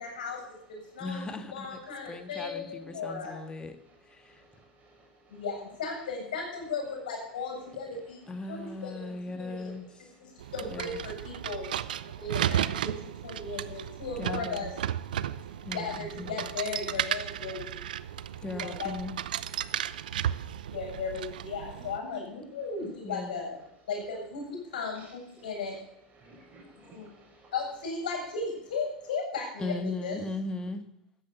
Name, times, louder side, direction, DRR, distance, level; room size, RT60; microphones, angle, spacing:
voice 1, 0.0-3.4 5.3-9.7 10.2-11.7 12.2-14.7 15.7-17.8 18.5-18.9 20.7-23.6 23.9-25.8 26.8-27.1 27.5-30.2, left 4 dB, 75° left, 0 dB, 7.4 m, -36 dB
voice 2, 1.0-1.7 2.0-3.8 4.1-4.4 8.3-9.9 10.7-11.0 14.2-14.7 15.6-16.4 18.4-19.2 23.0-23.4 29.6-30.8, left 3 dB, 20° left, 9 dB, 1.7 m, -37 dB
voice 3, 4.2-5.1 5.3-5.4 12.1-12.2 15.2-15.7 18.0-18.5 19.6-20.0 20.3-20.4 25.0-25.1 26.2-27.5, right 2 dB, 35° right, 1 dB, 5.5 m, -57 dB
sound 1, 10.4-22.0, right 10 dB, 75° right, 0.6 m, -34 dB
14.0 x 9.8 x 7.1 m, 0.74 s
hypercardioid pair, 85°, 5 cm